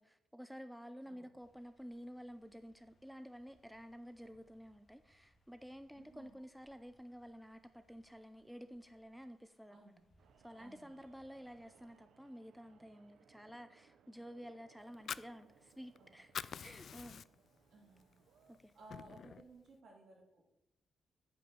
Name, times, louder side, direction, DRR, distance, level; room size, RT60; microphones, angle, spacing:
voice 1, 0.0-9.8 10.4-17.2 18.5-18.7, equal, ahead, 9 dB, 0.5 m, -52 dB
sound 1, 1.4-12.0, equal, 35° left, 2.1 m, -75 dB
voice 2, 5.9-6.4 9.7-10.0 10.6-10.9 16.0-16.4 17.7-18.2 18.7-20.4, right 3 dB, 65° right, -1 dB, 3.5 m, -59 dB
sound 2, 10.2-18.6, right 7 dB, 90° right, 0.7 m, -68 dB
Fire, 14.8-16.0 16.2-17.6 18.0-18.1 18.5-19.5, left 7 dB, 60° left, 0.3 m, -45 dB
8.6 x 5.5 x 7.8 m, 0.83 s
cardioid pair, 125°, 0 cm